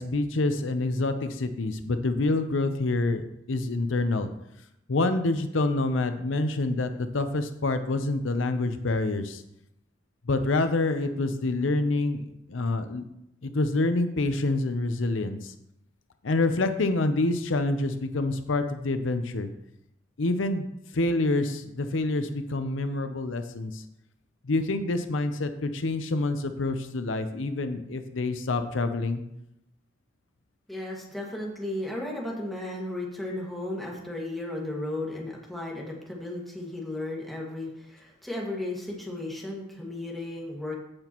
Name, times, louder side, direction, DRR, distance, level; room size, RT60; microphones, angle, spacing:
voice 1, 0.0-4.3 4.9-9.4 10.3-12.2 12.5-13.0 13.4-15.5 16.2-19.5 20.2-23.8 24.4-29.2, left 2 dB, 85° left, 9 dB, 0.7 m, -27 dB
voice 2, 30.7-40.8, left 1 dB, ahead, -3 dB, 1.9 m, -34 dB
15.5 x 6.0 x 3.0 m, 0.81 s
head